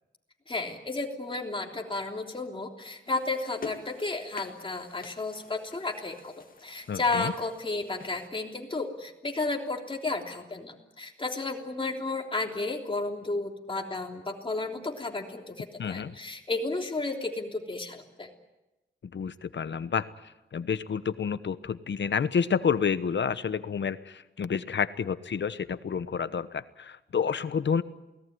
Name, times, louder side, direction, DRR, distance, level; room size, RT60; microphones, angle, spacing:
voice 1, 0.5-18.3, left 3 dB, 25° left, 2 dB, 3.3 m, -33 dB
sound 1, 3.1-8.3, left 4 dB, 45° left, 2.1 m, -47 dB
voice 2, 6.9-7.3 15.8-16.1 19.1-20.1 20.5-27.8, left 6 dB, 70° left, 13 dB, 1.1 m, -29 dB
29.0 x 18.5 x 9.5 m, 1.0 s
wide cardioid pair, 150°, 20 cm